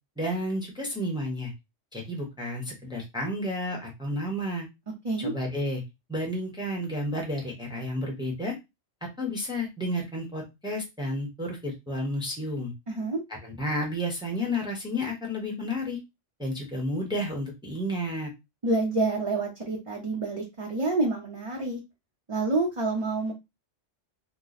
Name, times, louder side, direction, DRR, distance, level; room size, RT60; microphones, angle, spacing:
voice 1, 0.2-1.5 1.9-4.7 5.2-5.8 6.1-8.6 9.2-12.7 13.4-16.0 16.4-18.3, left 1 dB, 5° right, -1 dB, 0.9 m, -31 dB
voice 2, 12.9-13.2 18.6-21.8 22.3-23.3, right 2 dB, 30° right, -2 dB, 0.7 m, -28 dB
3.0 x 2.2 x 3.9 m, 0.22 s
omnidirectional pair, 1.3 m